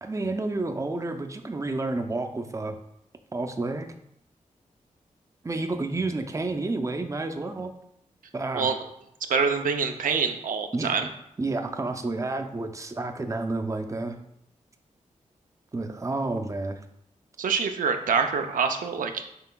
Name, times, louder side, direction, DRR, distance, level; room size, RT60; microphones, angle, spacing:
voice 1, 0.0-2.8 3.3-3.9 5.4-7.7 8.3-8.7 10.7-11.1 11.4-14.2 15.7-16.8, right 2 dB, 20° right, 6 dB, 0.5 m, -30 dB
voice 2, 9.3-11.1 17.4-19.2, right 5 dB, 75° right, 6 dB, 0.4 m, -25 dB
5.6 x 3.2 x 2.2 m, 0.76 s
cardioid pair, 50°, 14 cm